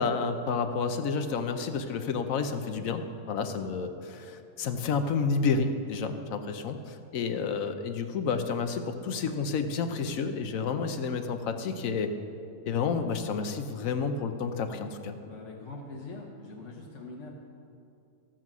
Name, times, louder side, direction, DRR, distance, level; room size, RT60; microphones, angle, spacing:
voice 1, 0.0-12.1 12.7-15.1, left 5 dB, 60° left, 8 dB, 0.9 m, -30 dB
voice 2, 15.2-17.3, left 3 dB, 45° left, -2 dB, 1.2 m, -43 dB
14.0 x 7.5 x 6.0 m, 2.6 s
omnidirectional pair, 2.0 m